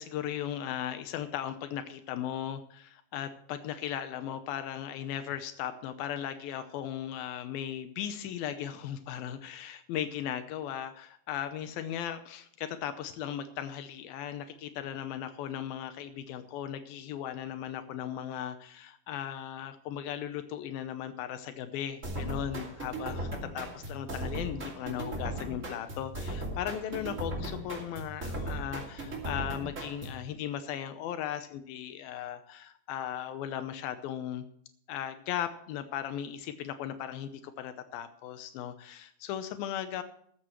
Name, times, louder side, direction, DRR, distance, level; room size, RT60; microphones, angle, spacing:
voice 1, 0.0-34.4 34.9-40.0, left 10 dB, 85° left, 10 dB, 2.7 m, -37 dB
sound 1, 22.0-30.2, right 1 dB, 25° right, 2.4 m, -37 dB
13.5 x 13.5 x 3.1 m, 0.66 s
omnidirectional pair, 4.1 m